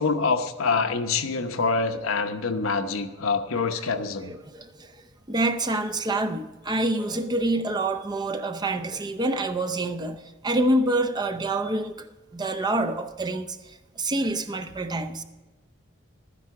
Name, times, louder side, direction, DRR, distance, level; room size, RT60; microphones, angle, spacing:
voice 1, 0.0-4.3, left 4 dB, 75° left, 0.9 m, -25 dB
voice 2, 4.0-4.9 5.3-12.1 12.3-15.2, right 2 dB, 20° right, 0.6 m, -27 dB
12.5 x 9.9 x 4.9 m
head